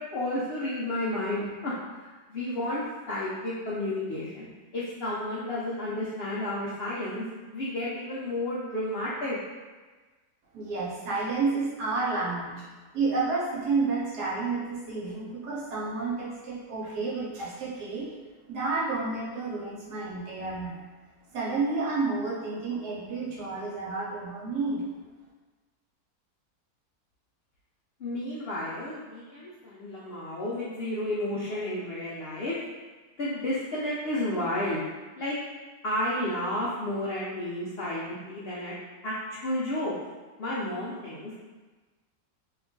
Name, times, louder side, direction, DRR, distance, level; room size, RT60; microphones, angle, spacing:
voice 1, 0.0-2.8 3.1-7.2 7.5-9.4 28.0-32.6 33.2-34.8 35.2-35.4 35.8-38.7 39.0-39.9 40.4-41.3, left 1 dB, 80° left, -7 dB, 0.5 m, -32 dB
voice 2, 10.5-12.7 12.9-18.1 18.5-20.8 21.3-24.8, right 3 dB, 80° right, -5 dB, 1.4 m, -30 dB
2.9 x 2.3 x 3.7 m, 1.3 s
omnidirectional pair, 1.7 m